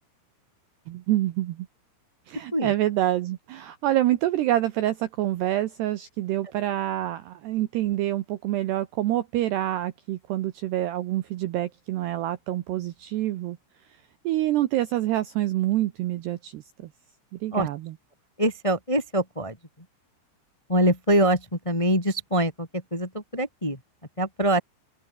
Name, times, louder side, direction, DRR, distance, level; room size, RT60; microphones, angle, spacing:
voice 1, 0.9-1.7 2.3-13.6 14.2-16.6 17.3-17.9, right 14 dB, 75° right, 2.6 m, -26 dB
voice 2, 18.4-19.6 20.7-23.8 24.2-24.6, right 1 dB, 10° left, 1.7 m, -24 dB
open air
omnidirectional pair, 6.0 m